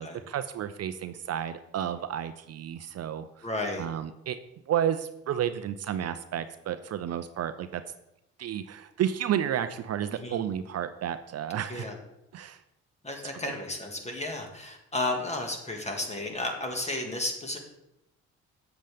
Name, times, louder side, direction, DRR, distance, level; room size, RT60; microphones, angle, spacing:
voice 1, 0.0-3.5 3.8-4.4 4.7-7.8 8.4-11.9 12.3-12.6 13.4-13.5, right 10 dB, 55° right, 11 dB, 0.5 m, -31 dB
voice 2, 3.4-3.9 10.1-10.4 11.7-12.0 13.0-17.6, left 2 dB, 20° left, 3 dB, 1.8 m, -33 dB
7.9 x 7.5 x 3.5 m, 0.85 s
supercardioid pair, 75°, 31 cm